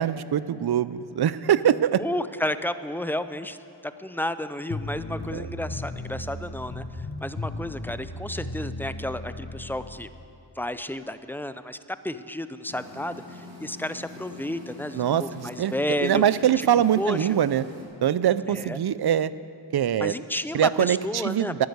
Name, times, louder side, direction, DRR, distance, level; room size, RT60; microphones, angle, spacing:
voice 1, 0.0-2.0 5.3-5.4 14.9-15.7 16.0-17.6 18.0-19.3 19.7-20.1 20.5-21.7, right 10 dB, 60° right, 17 dB, 0.5 m, -23 dB
voice 2, 2.0-3.6 3.8-10.1 10.6-11.8 12.0-16.2 16.6-16.7 16.9-17.4 18.5-18.8 20.0-21.7, left 1 dB, 5° left, 12 dB, 0.5 m, -32 dB
sound 1, 4.7-10.0, left 2 dB, 45° left, 1.6 m, -35 dB
sound 2, 12.6-17.8, left 2 dB, 40° right, 3.8 m, -43 dB
11.5 x 9.5 x 7.9 m, 2.7 s
cardioid pair, 40°, 46 cm